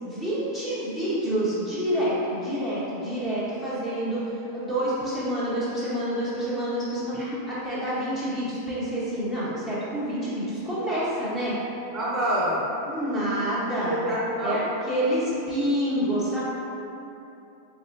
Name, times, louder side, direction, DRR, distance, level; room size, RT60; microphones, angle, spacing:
voice 1, 0.0-11.5 12.8-14.0 14.4-14.6 14.9-16.4, equal, 20° left, -9 dB, 1.4 m, -28 dB
voice 2, 11.9-12.6 13.8-14.6, right 1 dB, 20° right, -7 dB, 0.7 m, -26 dB
4.1 x 3.5 x 2.6 m, 3.0 s
figure-of-eight pair, 90°, 0 cm